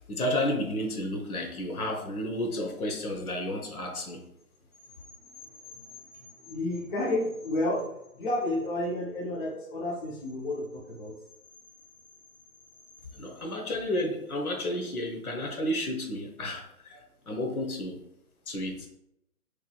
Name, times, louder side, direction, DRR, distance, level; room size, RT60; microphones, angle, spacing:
voice 1, 0.1-4.2 13.1-18.0 18.5-18.9, left 1 dB, 70° left, 2 dB, 1.1 m, -32 dB
voice 2, 5.5-11.1, left 1 dB, 35° left, -3 dB, 0.7 m, -32 dB
4.6 x 3.0 x 2.3 m, 0.82 s
hypercardioid pair, 150°, 47 cm